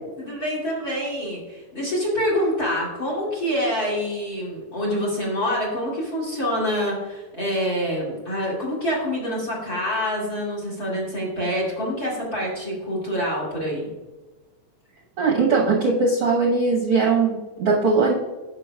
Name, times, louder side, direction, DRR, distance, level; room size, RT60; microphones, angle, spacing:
voice 1, 0.2-13.9, equal, 30° left, -3 dB, 2.3 m, -26 dB
voice 2, 15.2-18.1, right 4 dB, 65° right, -2 dB, 1.5 m, -20 dB
10.0 x 7.1 x 2.3 m, 1.2 s
omnidirectional pair, 3.7 m